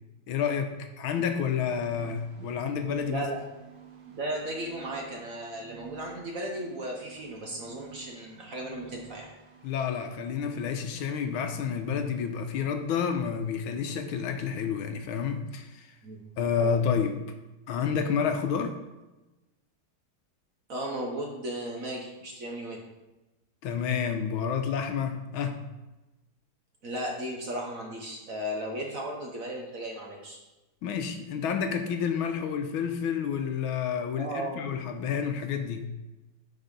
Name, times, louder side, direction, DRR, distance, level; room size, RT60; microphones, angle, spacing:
voice 1, 0.3-3.3 9.6-15.9 16.4-17.2 17.7-18.7 23.6-25.6 30.8-35.9, left 7 dB, 80° left, 6 dB, 1.5 m, -29 dB
sound 1, 1.0-10.1, right 8 dB, 80° right, 1.8 m, -50 dB
voice 2, 3.1-3.4 4.1-9.3 16.0-16.2 16.6-16.7 20.7-22.8 26.8-30.4 34.2-34.7, right 1 dB, 50° right, 0 dB, 1.3 m, -35 dB
8.1 x 4.6 x 5.3 m, 1.1 s
omnidirectional pair, 2.3 m